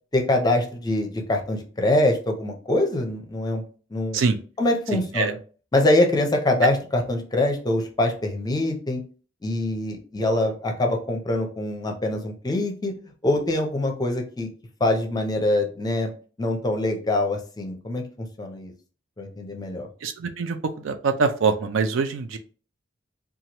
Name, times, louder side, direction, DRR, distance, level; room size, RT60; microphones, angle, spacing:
voice 1, 0.1-3.6 3.9-4.2 4.6-5.4 5.7-9.0 9.4-12.9 13.2-14.5 14.8-16.1 16.4-18.7 19.2-19.9, left 1 dB, 20° left, 3 dB, 0.5 m, -24 dB
voice 2, 20.0-22.4, right 4 dB, 75° right, 7 dB, 0.4 m, -24 dB
2.9 x 2.3 x 2.8 m, 0.38 s
head